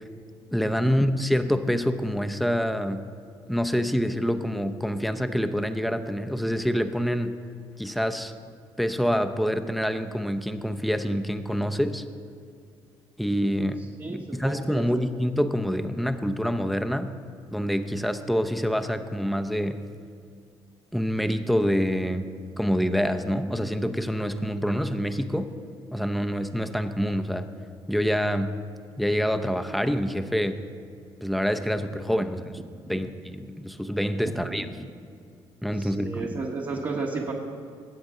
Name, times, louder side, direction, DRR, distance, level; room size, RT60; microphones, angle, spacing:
voice 1, 0.5-3.1 3.5-7.4 7.8-8.3 8.8-12.0 13.2-17.1 17.5-19.8 20.9-22.3 22.6-25.5 25.9-27.5 27.9-28.6 29.0-30.6 31.2-32.4 32.9-34.7 35.6-36.4, equal, ahead, 8 dB, 0.7 m, -26 dB
voice 2, 14.0-15.0 32.9-33.0 34.5-34.6 35.8-37.3, right 3 dB, 40° right, -2 dB, 1.3 m, -33 dB
19.0 x 8.0 x 3.8 m, 2.4 s
supercardioid pair, 75°, 11 cm